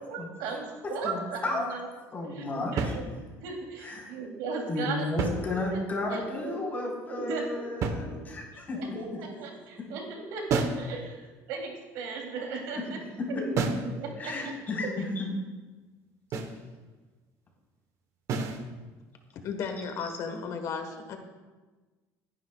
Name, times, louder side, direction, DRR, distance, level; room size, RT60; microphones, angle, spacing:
voice 1, 0.1-1.8 2.3-3.1 3.4-8.4 8.7-13.0 13.3-13.5 14.0-14.3, right 4 dB, 85° right, 0 dB, 3.0 m, -37 dB
voice 2, 1.0-1.7 2.1-2.9 3.8-4.1 4.7-8.8 13.3-13.4 14.2-15.3, left 2 dB, 30° left, -3 dB, 4.2 m, -33 dB
sound 1, 2.8-3.5 5.0-6.0 7.8-8.6 10.5-10.9 13.6-14.0 16.3-16.6 18.3-18.7, right 4 dB, 50° right, 1.1 m, -31 dB
voice 3, 19.4-21.2, left 5 dB, 55° left, 6 dB, 1.3 m, -34 dB
20.0 x 10.5 x 2.4 m, 1.3 s
cardioid pair, 130°, 7 cm